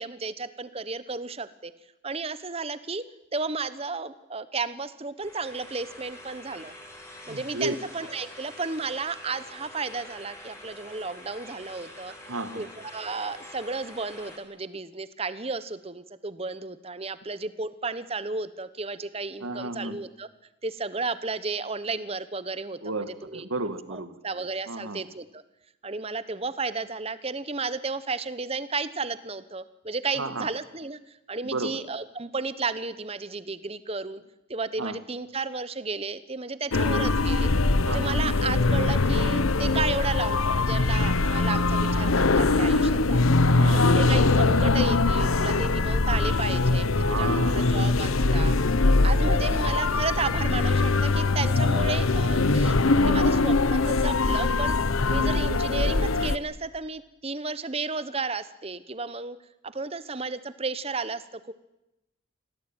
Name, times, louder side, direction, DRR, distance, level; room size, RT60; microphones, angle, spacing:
voice 1, 0.0-1.7 2.0-3.0 3.3-6.7 7.3-12.1 12.5-20.3 20.6-22.8 23.1-23.4 23.9-25.4 25.8-34.2 34.5-37.5 37.9-43.3 43.7-48.5 49.0-52.8 53.0-54.7 55.1-59.4 59.6-61.5, right 4 dB, 30° right, 14 dB, 1.0 m, -33 dB
sound 1, 5.2-14.4, left 1 dB, 15° left, 4.5 m, -46 dB
voice 2, 7.3-7.8 12.1-12.7 19.4-20.0 22.8-24.2 24.7-25.0 30.2-30.5 31.4-31.8 34.8-35.0 37.8-38.2 43.5-43.9 46.9-47.7, right 2 dB, 80° right, 10 dB, 1.9 m, -33 dB
sound 2, 36.7-56.4, left 3 dB, 80° left, 1.0 m, -22 dB
25.0 x 17.0 x 8.9 m, 0.94 s
head